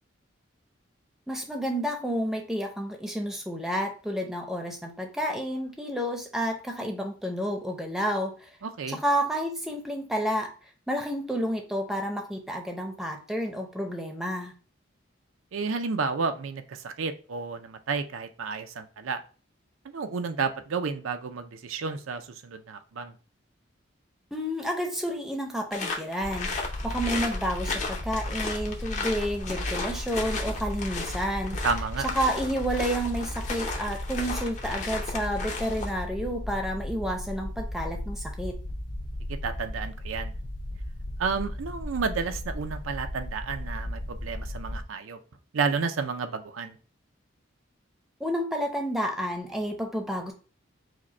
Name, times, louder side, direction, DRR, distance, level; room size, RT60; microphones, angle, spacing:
voice 1, 1.3-8.5 8.9-10.5 10.9-14.5 24.3-31.6 32.1-38.6 48.2-50.3, equal, ahead, 2 dB, 0.6 m, -30 dB
voice 2, 8.6-9.0 15.5-19.2 19.9-23.1 31.6-32.1 39.3-40.3 41.2-45.2 45.5-46.8, right 5 dB, 85° right, 8 dB, 0.5 m, -31 dB
sound 1, 25.7-36.0, left 3 dB, 35° left, 0.7 m, -35 dB
sound 2, 26.2-44.8, left 1 dB, 60° left, 1.3 m, -35 dB
4.9 x 2.2 x 4.1 m, 0.37 s
head